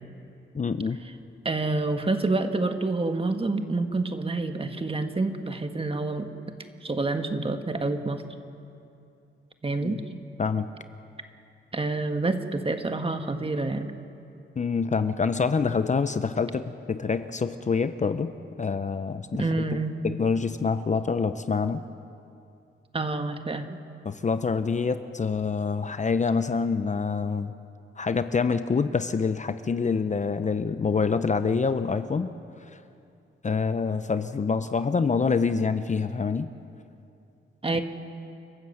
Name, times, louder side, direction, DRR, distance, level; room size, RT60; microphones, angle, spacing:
voice 1, 0.5-1.0 9.8-9.9 10.4-10.7 14.6-16.6 16.9-18.3 18.6-19.4 19.7-21.8 24.0-27.5 28.0-32.3 33.4-36.5 37.7-37.8, left 5 dB, 35° left, 11 dB, 0.7 m, -26 dB
voice 2, 1.4-6.3 6.8-8.2 9.6-10.0 11.7-13.9 19.3-20.0 22.9-23.8 37.6-37.8, right 3 dB, 25° right, 7 dB, 1.5 m, -28 dB
29.5 x 13.0 x 7.9 m, 2.6 s
cardioid pair, 95°, 21 cm